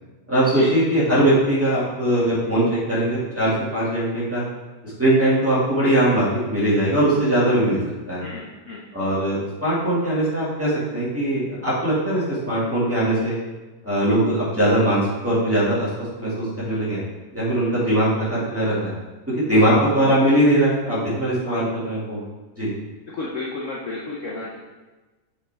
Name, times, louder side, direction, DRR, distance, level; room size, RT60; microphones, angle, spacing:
voice 1, 0.3-4.4 4.8-7.8 8.1-8.3 8.9-13.4 13.8-17.0 17.3-19.0 19.3-22.2 22.5-22.7, right 1 dB, 10° right, -10 dB, 2.0 m, -21 dB
voice 2, 8.2-8.8 19.5-19.9 21.5-21.6 23.1-24.6, left 3 dB, 55° left, -4 dB, 1.0 m, -31 dB
6.5 x 5.2 x 3.5 m, 1.2 s
omnidirectional pair, 1.9 m